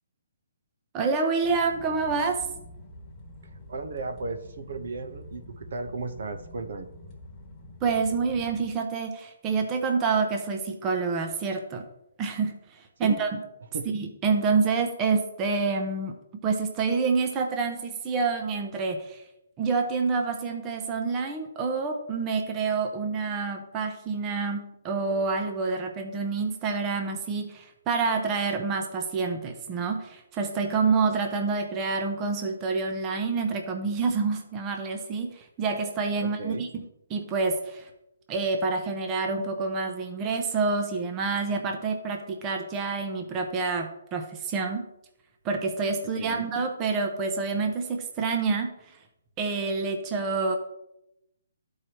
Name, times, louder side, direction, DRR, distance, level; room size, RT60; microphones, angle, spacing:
voice 1, 0.9-2.5 7.8-11.8 12.2-13.4 13.9-16.1 16.4-19.3 19.6-37.9 38.3-44.9 45.4-48.9 49.4-50.6, right 4 dB, 20° right, 4 dB, 0.7 m, -27 dB
sound 1, 1.4-8.7, left 1 dB, 10° left, 1.3 m, -46 dB
voice 2, 3.4-6.9 13.0-13.2 13.7-13.9 36.2-36.7 46.2-46.5, right 3 dB, 60° right, 7 dB, 0.9 m, -35 dB
12.5 x 4.7 x 3.0 m, 0.84 s
hypercardioid pair, 165°, 0 cm